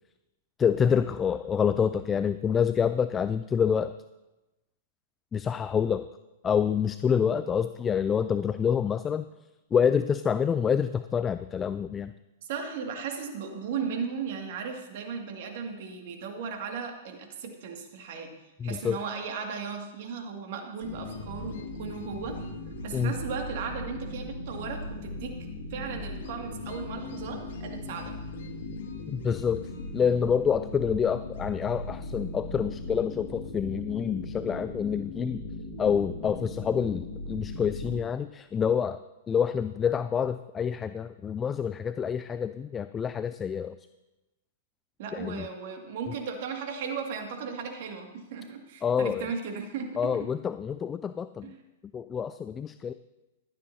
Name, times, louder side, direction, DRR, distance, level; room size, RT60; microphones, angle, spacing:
voice 1, 0.6-3.9 5.3-6.1 6.4-9.2 9.7-12.1 18.6-19.0 22.9-23.1 29.1-29.6 29.9-35.4 35.8-39.0 39.3-43.8 45.1-45.5 48.8-49.3 50.0-51.5 51.9-52.9, left 7 dB, 20° left, 12 dB, 0.3 m, -27 dB
voice 2, 12.5-18.3 18.6-22.4 22.8-25.3 25.7-28.1 45.0-50.3 51.4-51.6, right 6 dB, 55° right, 3 dB, 2.1 m, -36 dB
sound 1, 20.8-38.0, left 2 dB, 65° left, 2.1 m, -38 dB
15.0 x 13.0 x 2.8 m, 1.0 s
figure-of-eight pair, 105°, 0 cm